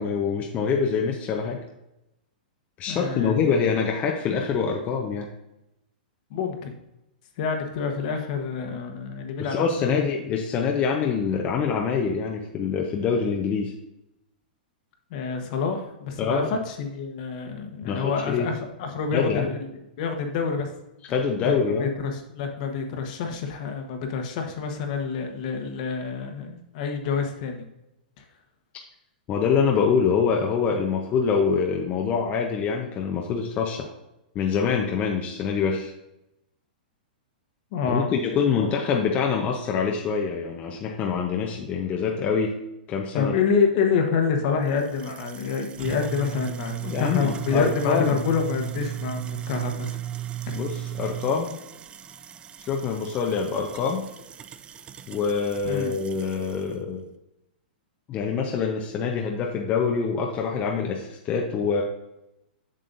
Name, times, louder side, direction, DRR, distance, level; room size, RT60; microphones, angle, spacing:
voice 1, 0.0-1.6 2.8-5.3 9.4-13.7 16.2-16.5 17.8-18.5 19.1-19.5 21.1-21.9 29.3-33.9 34.3-35.9 37.9-42.5 42.9-43.3 46.8-48.2 50.5-51.5 52.7-54.1 55.1-57.1 58.1-61.8, left 6 dB, 30° left, 1 dB, 0.8 m, -25 dB
voice 2, 2.9-3.5 6.3-6.8 7.4-10.1 15.1-19.7 20.0-20.7 21.4-27.7 28.2-28.3 37.7-38.2 38.6-38.7 43.1-50.0 55.6-55.9, left 5 dB, 55° left, 4 dB, 1.3 m, -27 dB
sound 1, 44.7-56.7, right 11 dB, 20° right, 0.3 m, -36 dB
7.5 x 6.5 x 2.6 m, 0.88 s
hypercardioid pair, 125°, 5 cm